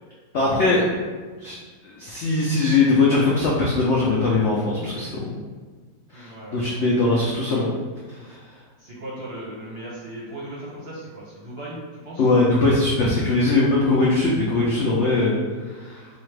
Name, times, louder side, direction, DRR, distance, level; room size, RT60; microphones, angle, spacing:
voice 1, 0.3-0.9 1.4-1.6 1.8-5.2 6.1-7.7 8.1-8.4 12.2-16.1, left 3 dB, 75° left, -4 dB, 0.6 m, -21 dB
voice 2, 6.1-6.6 8.8-12.3, right 1 dB, 50° right, -7 dB, 0.8 m, -37 dB
4.1 x 2.4 x 3.2 m, 1.4 s
omnidirectional pair, 1.8 m